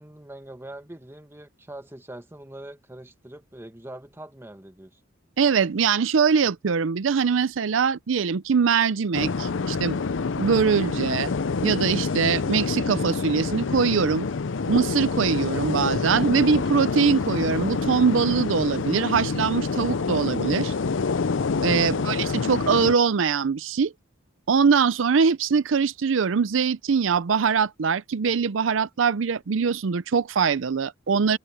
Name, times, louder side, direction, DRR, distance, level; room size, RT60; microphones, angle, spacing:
voice 1, 0.0-5.0, right 1 dB, 15° right, 1.6 m, -43 dB
voice 2, 5.4-10.0 10.4-11.3 11.6-14.3 14.7-20.7 21.6-23.9 24.5-31.4, right 6 dB, 85° right, 0.5 m, -22 dB
sound 1, 9.1-22.9, left 4 dB, 80° left, 0.6 m, -27 dB
sound 2, 16.0-20.0, equal, 20° left, 6.0 m, -59 dB
head